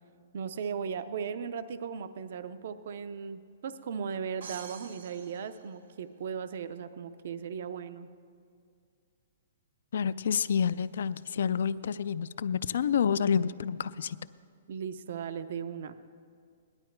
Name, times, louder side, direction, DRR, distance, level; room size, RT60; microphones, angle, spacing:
voice 1, 0.3-8.1 14.7-15.9, right 6 dB, 50° right, 12 dB, 0.5 m, -37 dB
sound 1, 4.4-6.4, right 5 dB, 65° right, 1.0 m, -48 dB
voice 2, 9.9-14.2, left 7 dB, 65° left, 16 dB, 0.3 m, -28 dB
18.0 x 11.5 x 4.5 m, 2.2 s
hypercardioid pair, 175°, 0 cm